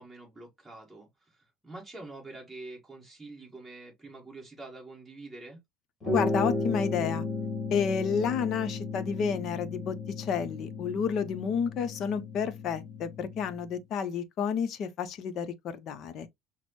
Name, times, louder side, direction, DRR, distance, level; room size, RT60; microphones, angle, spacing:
voice 1, 0.0-5.6, right 2 dB, 5° right, 1.6 m, -46 dB
sound 1, 6.0-13.7, left 3 dB, 10° left, 1.7 m, -34 dB
voice 2, 6.1-7.2 7.7-16.3, left 6 dB, 40° left, 0.6 m, -30 dB
6.0 x 2.0 x 3.0 m
cardioid pair, 165°, 0 cm